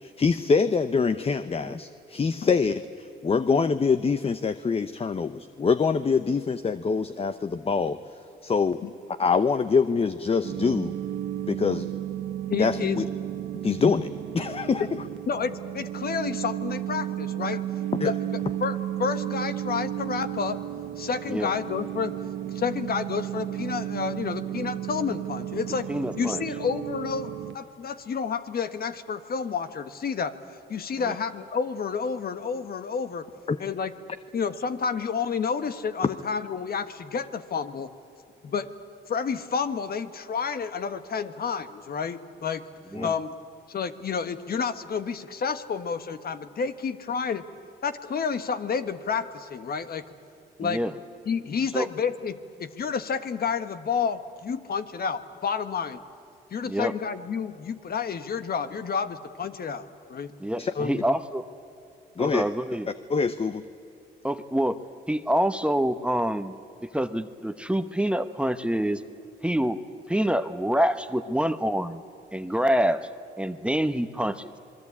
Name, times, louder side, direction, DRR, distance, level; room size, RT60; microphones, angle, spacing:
voice 1, 0.0-8.0 8.4-8.8 9.2-10.9 11.5-11.9 12.6-13.1 13.6-14.9 18.0-18.1 33.5-33.6 43.0-43.1 60.6-60.7 62.2-62.4 63.1-63.6, left 5 dB, 30° left, 12 dB, 0.8 m, -25 dB
sound 1, 10.4-27.6, right 12 dB, 75° right, 1.1 m, -33 dB
voice 2, 12.5-13.0 15.3-17.6 18.0-18.2 18.6-20.6 21.0-22.2 22.5-25.9 26.2-30.3 30.7-33.3 33.6-33.9 34.3-37.9 38.4-38.7 39.1-42.6 43.0-43.3 43.7-47.5 47.8-50.0 50.6-50.8 51.2-56.0 56.5-60.3 60.7-61.0, left 6 dB, 50° left, 10 dB, 1.4 m, -30 dB
voice 3, 25.9-26.4 31.0-31.1 42.9-43.1 50.6-50.9 51.7-51.9 56.7-56.9 60.4-61.4 62.2-62.9 64.2-64.8 65.1-66.5 66.8-69.0 69.4-69.8 70.1-72.0 72.3-73.1 73.4-74.5, equal, 5° right, 9 dB, 1.0 m, -26 dB
27.5 x 21.5 x 8.5 m, 2.7 s
cardioid pair, 90°, 20 cm